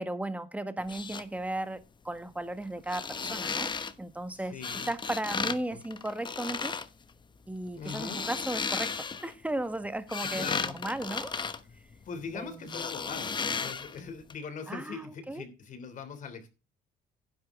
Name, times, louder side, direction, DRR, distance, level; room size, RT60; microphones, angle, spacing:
voice 1, 0.0-3.7 4.0-6.7 7.5-8.9 9.2-10.5 10.7-11.3 12.3-12.8 14.7-15.4, right 1 dB, 10° right, 1.5 m, -35 dB
sound 1, 0.8-1.2 2.8-3.9 4.6-5.6 5.8-6.9 7.7-9.3 9.8-12.3 12.7-14.0 14.3-14.4, left 5 dB, 25° left, 1.1 m, -34 dB
voice 2, 4.3-4.9 5.4-5.8 7.7-8.2 10.2-10.8 12.0-16.5, left 5 dB, 50° left, 3.1 m, -41 dB
11.0 x 10.5 x 3.7 m
cardioid pair, 110°, 17 cm